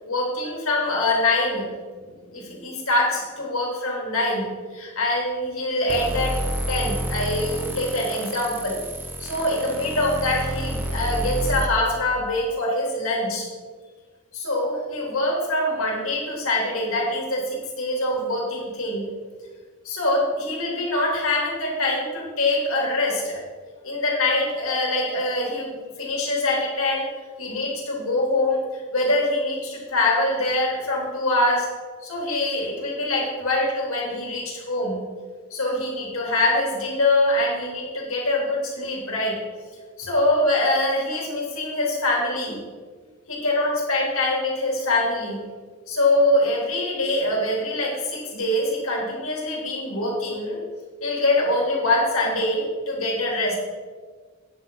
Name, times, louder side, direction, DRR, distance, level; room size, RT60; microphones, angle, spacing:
voice 1, 0.1-1.7 2.3-4.5 4.7-8.8 9.2-13.5 14.3-19.1 19.8-23.4 23.8-27.1 27.4-31.7 32.0-35.0 35.5-39.4 40.0-42.6 43.3-45.4 45.9-50.6 51.0-53.6, left 1 dB, 65° left, -2 dB, 3.2 m, -24 dB
sound 1, 5.9-11.7, right 1 dB, 10° right, 0.9 m, -29 dB
9.5 x 8.0 x 5.7 m, 1.5 s
head